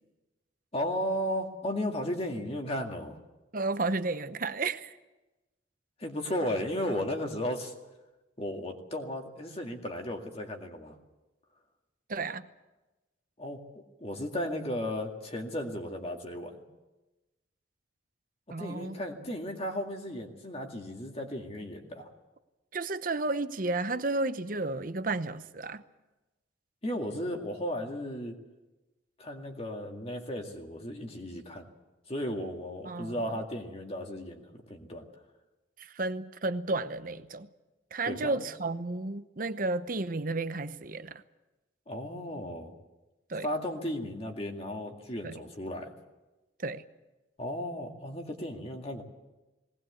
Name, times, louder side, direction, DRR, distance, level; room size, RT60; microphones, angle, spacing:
voice 1, 0.7-3.2 6.0-7.7 8.4-10.9 13.4-13.6 14.0-16.6 18.6-22.1 26.8-28.4 29.2-31.7 32.1-35.0 38.0-38.5 41.9-42.7 43.4-45.9 47.4-49.0, left 1 dB, 30° left, 2.1 m, -35 dB
voice 2, 3.5-5.0 12.1-12.5 18.5-19.0 22.7-25.8 32.8-33.2 35.8-37.5 37.9-41.2 43.3-43.5 45.2-45.4 46.6-46.8, right 3 dB, 45° right, 0.8 m, -32 dB
19.0 x 19.0 x 8.3 m
head